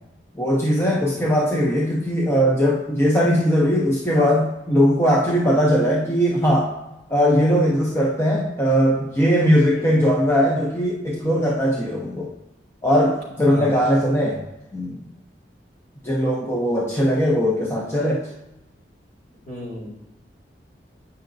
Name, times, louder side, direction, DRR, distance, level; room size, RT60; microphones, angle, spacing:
voice 1, 0.4-6.7 7.1-12.3 12.8-14.4 14.7-15.0 16.0-18.3, equal, 15° left, -2 dB, 0.6 m, -19 dB
voice 2, 13.4-13.8 19.5-19.9, right 1 dB, 50° left, -4 dB, 2.4 m, -34 dB
8.1 x 5.7 x 2.6 m, 0.93 s
head